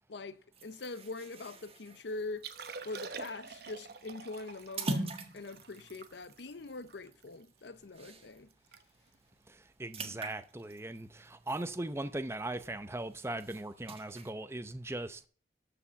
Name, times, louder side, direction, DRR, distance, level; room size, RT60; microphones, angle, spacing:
voice 1, 0.1-2.5 2.8-8.5, left 3 dB, 70° left, 0.7 m, -43 dB
sound 1, 0.5-8.5 8.9-9.1 9.4-12.3 12.7-14.3, right 2 dB, 30° right, 1.5 m, -44 dB
Liquid, 2.3-7.7 8.1-8.2 8.5-8.8 9.1-9.3 9.9-10.2 11.6-11.7, right 5 dB, 55° right, 1.0 m, -47 dB
voice 2, 9.5-15.3, right 2 dB, 15° right, 0.6 m, -39 dB
13.0 x 5.0 x 7.0 m
head